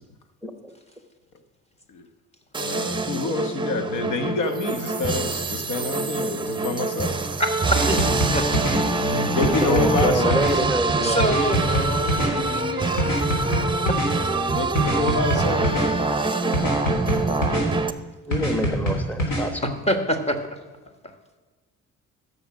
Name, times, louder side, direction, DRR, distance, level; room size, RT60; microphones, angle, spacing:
voice 1, 0.4-0.7 9.5-11.3 16.4-16.5 18.3-19.6, right 1 dB, 5° left, 6 dB, 1.2 m, -26 dB
sound 1, 2.5-17.9, right 3 dB, 15° right, 0.7 m, -25 dB
voice 2, 2.6-7.2 8.7-10.6 14.5-15.9, left 3 dB, 85° left, 8 dB, 1.2 m, -27 dB
voice 3, 7.4-8.5 11.0-13.1 13.9-14.0 19.6-20.4, equal, 20° left, 5 dB, 1.6 m, -26 dB
sound 2, 7.8-8.8 9.4-10.5 11.2-12.3 13.0-14.1 14.8-15.9 16.5-17.6 18.3-19.4, equal, 70° left, 3.7 m, -24 dB
14.0 x 6.9 x 6.3 m, 1.3 s
cardioid pair, 90°, 30 cm